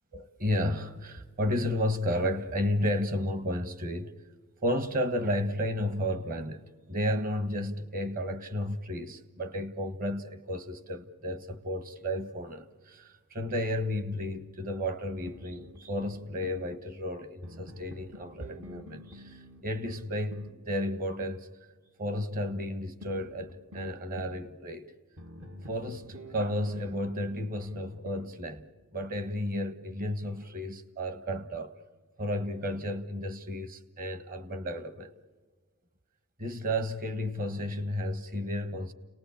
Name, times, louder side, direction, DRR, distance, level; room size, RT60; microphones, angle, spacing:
voice 1, 0.1-4.1 4.6-21.5 22.0-24.9 25.7-31.7 32.2-35.1 36.4-38.9, equal, 40° right, 1.5 m, -33 dB
sound 1, 15.3-16.7 17.4-20.6 23.0-24.4 25.2-28.3, equal, 65° right, 2.2 m, -48 dB
30.0 x 19.5 x 8.5 m
head